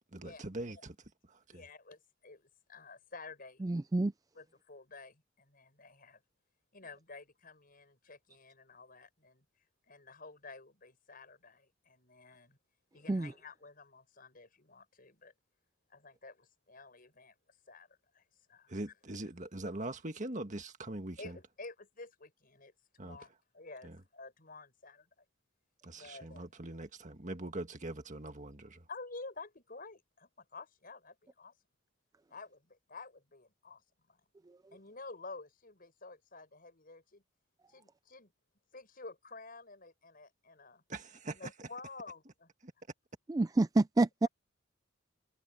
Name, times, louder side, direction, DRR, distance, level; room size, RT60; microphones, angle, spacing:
voice 1, 0.1-1.0 1.3-1.6 18.7-21.4 23.0-23.2 23.8-24.0 25.8-28.9 40.9-41.5 42.6-42.7, right 2 dB, 40° right, 1.8 m, -42 dB
voice 2, 1.5-3.6 4.3-6.2 6.7-9.4 9.9-12.6 12.9-15.3 15.9-17.3 17.7-18.7 21.2-22.7 23.0-25.1 25.9-26.5 28.9-31.5 32.3-33.8 34.1-34.2 34.7-37.2 37.7-38.3 38.7-40.8 41.3-42.5, left 3 dB, 45° left, 6.1 m, -51 dB
voice 3, 3.6-4.1 13.1-13.3 43.3-44.3, right 2 dB, 20° right, 0.3 m, -28 dB
head